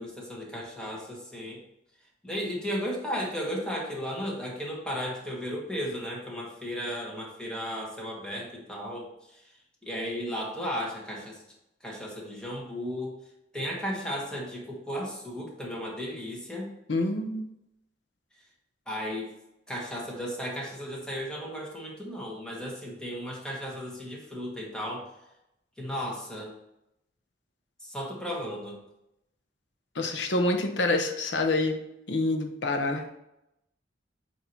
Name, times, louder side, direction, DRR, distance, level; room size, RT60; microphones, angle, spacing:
voice 1, 0.0-1.6 2.2-9.5 9.8-11.4 11.8-13.1 13.5-16.7 18.9-19.4 19.7-25.1 25.8-26.5 27.8-28.8 32.7-33.2, equal, 5° left, -2 dB, 1.3 m, -35 dB
voice 2, 16.9-17.5 29.9-31.8 32.1-33.0, left 2 dB, 85° left, 4 dB, 0.8 m, -27 dB
8.1 x 2.8 x 4.5 m, 0.85 s
head